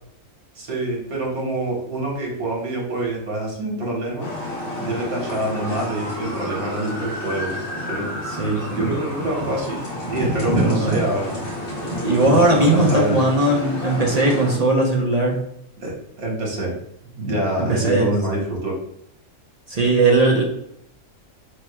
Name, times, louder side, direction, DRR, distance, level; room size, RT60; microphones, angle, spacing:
voice 1, 0.6-4.3 4.8-7.6 7.9-8.4 8.7-11.4 12.6-13.2 15.8-16.7 17.2-18.8, right 1 dB, 75° right, -3 dB, 1.8 m, -26 dB
sound 1, 4.2-14.6, equal, 65° left, 1.9 m, -28 dB
voice 2, 8.4-8.9 10.6-10.9 12.0-15.4 17.6-18.0 18.3-18.4 19.7-20.4, right 2 dB, 45° right, -2 dB, 0.5 m, -18 dB
4.6 x 4.3 x 2.2 m, 0.73 s
omnidirectional pair, 1.5 m